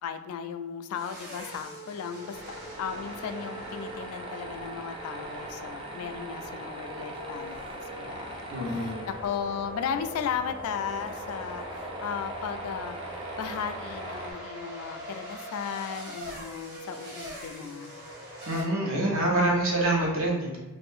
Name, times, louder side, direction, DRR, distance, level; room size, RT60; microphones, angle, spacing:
voice 1, 0.0-8.4 8.8-13.0 13.4-18.0, left 7 dB, 80° left, 9 dB, 0.3 m, -36 dB
sound 1, 0.9-18.6, equal, 40° right, 1.1 m, -42 dB
Tools, 2.3-14.3, right 2 dB, 20° right, 0.4 m, -42 dB
voice 2, 8.5-9.0 18.4-20.6, right 1 dB, 65° right, -3 dB, 0.9 m, -26 dB
2.6 x 2.5 x 3.5 m, 1.2 s
head